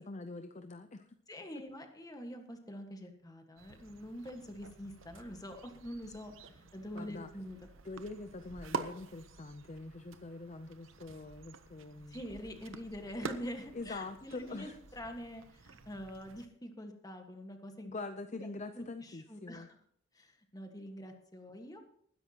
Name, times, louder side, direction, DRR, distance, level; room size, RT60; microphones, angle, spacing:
voice 1, 0.1-1.1 6.9-7.3 7.8-12.2 13.7-14.8 17.8-19.7, left 3 dB, 35° left, 8 dB, 0.6 m, -44 dB
voice 2, 1.3-7.7 12.1-17.9 18.4-19.8 20.1-21.8, equal, 20° left, 5 dB, 1.6 m, -45 dB
sound 1, 3.6-16.5, right 4 dB, 80° right, 0.9 m, -48 dB
20.0 x 10.5 x 2.9 m, 0.66 s
head